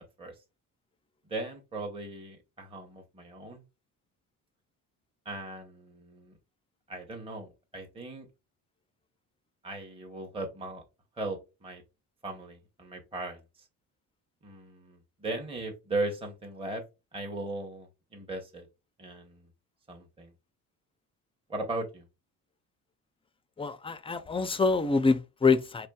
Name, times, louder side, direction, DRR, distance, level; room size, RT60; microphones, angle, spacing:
voice 1, 1.3-3.6 5.2-6.4 6.9-8.3 9.6-10.8 11.2-11.8 12.2-13.6 14.4-16.8 17.1-18.7 19.0-19.4 19.9-20.3 21.5-22.0, right 2 dB, 15° right, 0.8 m, -38 dB
voice 2, 23.6-25.9, left 4 dB, 15° left, 0.3 m, -26 dB
4.3 x 3.4 x 2.2 m
cardioid pair, 120°, 34 cm